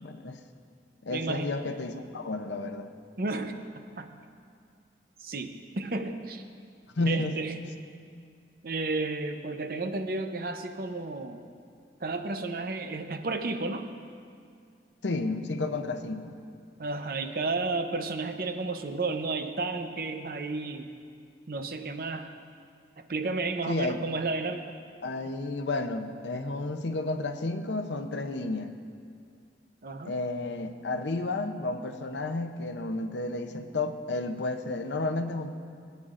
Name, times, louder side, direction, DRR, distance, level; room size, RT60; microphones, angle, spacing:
voice 1, 0.0-0.4 1.0-2.9 7.0-7.4 15.0-16.3 23.7-24.0 25.0-28.7 30.0-35.5, left 2 dB, 85° left, 8 dB, 0.7 m, -32 dB
voice 2, 1.1-1.5 3.2-3.6 4.0-4.1 5.2-6.4 7.1-7.5 8.6-11.4 12.0-13.9 16.8-20.9 21.5-22.3 23.1-24.7 29.8-30.1, right 3 dB, 55° right, 7 dB, 0.7 m, -32 dB
21.0 x 9.4 x 2.5 m, 2.3 s
head